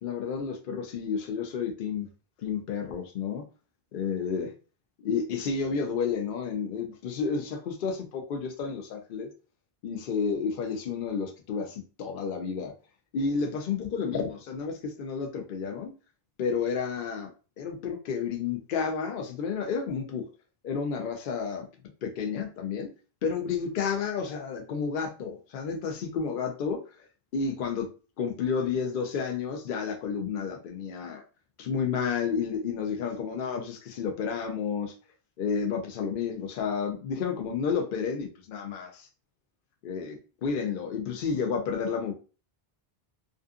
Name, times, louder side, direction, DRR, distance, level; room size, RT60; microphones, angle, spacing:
voice 1, 0.0-2.1 2.4-3.4 3.9-4.5 5.0-9.3 9.8-12.7 13.1-15.9 16.4-17.3 17.6-20.3 20.6-21.7 22.0-22.9 23.2-26.8 27.3-27.9 28.2-31.2 31.6-34.9 35.4-39.1 39.8-42.1, left 6 dB, 60° left, 3 dB, 0.7 m, -31 dB
2.5 x 2.4 x 2.4 m, 0.35 s
omnidirectional pair, 1.0 m